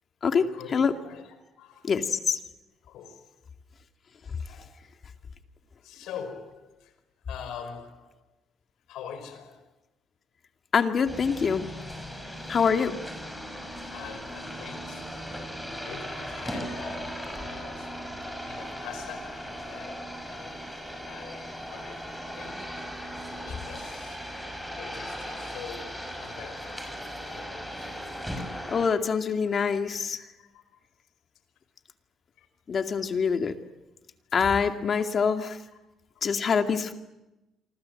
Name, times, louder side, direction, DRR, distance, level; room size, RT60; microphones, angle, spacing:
voice 1, 0.4-1.9 2.8-3.2 4.5-4.8 5.8-6.9 7.3-8.2 8.9-9.7 13.5-15.1 15.7-20.6 21.0-22.7 23.3-24.2 24.7-26.8 27.2-27.9 30.4-30.6 32.4-32.5 35.4-35.6 36.1-36.4, left 7 dB, 80° left, 4.5 m, -44 dB
voice 2, 1.8-2.4 10.7-11.7 12.5-13.0 28.7-30.2 32.7-33.5 34.3-35.5 36.2-37.0, left 6 dB, 40° left, 2.3 m, -25 dB
sound 1, 11.1-28.9, equal, ahead, 6.1 m, -38 dB
27.0 x 25.5 x 7.9 m
cardioid pair, 110°, 0 cm